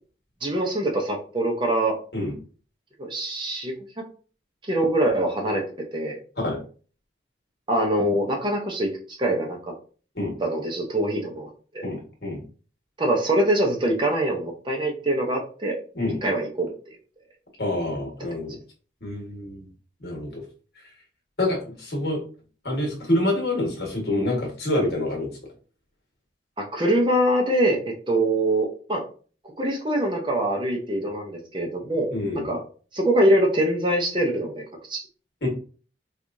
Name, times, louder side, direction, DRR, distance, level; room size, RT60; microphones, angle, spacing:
voice 1, 0.4-2.0 3.0-4.1 4.6-5.7 5.9-6.2 7.7-9.7 10.4-11.8 13.0-15.8 16.2-17.0 26.6-29.0 29.6-32.1 32.4-32.6 32.9-35.0, right 1 dB, 25° right, 2 dB, 0.6 m, -24 dB
voice 2, 11.8-12.4 15.9-16.2 17.6-18.6 19.0-19.7 20.0-20.4 21.4-22.2 22.6-25.3 32.1-32.5 35.4-35.5, left 1 dB, 60° left, -1 dB, 1.5 m, -27 dB
4.5 x 2.4 x 2.6 m, 0.39 s
head